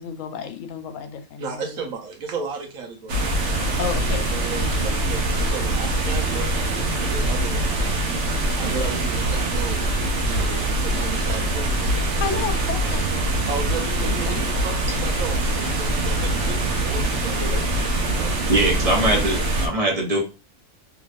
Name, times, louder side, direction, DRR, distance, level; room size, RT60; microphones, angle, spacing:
voice 1, 0.0-1.6 3.8-4.3 4.6-5.0 12.2-13.1 14.0-14.6, left 7 dB, 75° left, 7 dB, 0.9 m, -32 dB
voice 2, 1.4-4.0 4.3-9.8 10.1-12.5 13.5-14.4 14.6-19.4, right 5 dB, 85° right, 2 dB, 1.2 m, -35 dB
sound 1, 3.1-19.7, right 1 dB, 65° right, 1.0 m, -23 dB
voice 3, 18.5-20.2, right 1 dB, 35° right, 0 dB, 0.7 m, -21 dB
3.3 x 3.0 x 2.4 m, 0.31 s
omnidirectional pair, 1.4 m